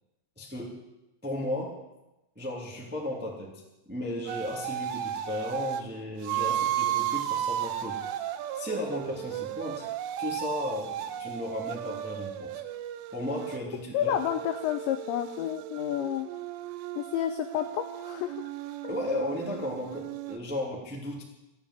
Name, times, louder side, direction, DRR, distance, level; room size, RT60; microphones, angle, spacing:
voice 1, 0.3-0.8 1.2-1.8 2.3-8.2 8.5-9.9 10.2-12.5 13.1-14.2 18.9-21.2, left 1 dB, 5° right, -2 dB, 1.2 m, -35 dB
sound 1, 4.3-5.8 6.2-13.6 14.0-20.4, right 11 dB, 80° right, 3.2 m, -34 dB
voice 2, 13.9-16.3 17.0-18.5 18.8-18.9, left 11 dB, 85° left, 8 dB, 2.5 m, -30 dB
14.5 x 9.6 x 9.9 m, 0.96 s
omnidirectional pair, 6.0 m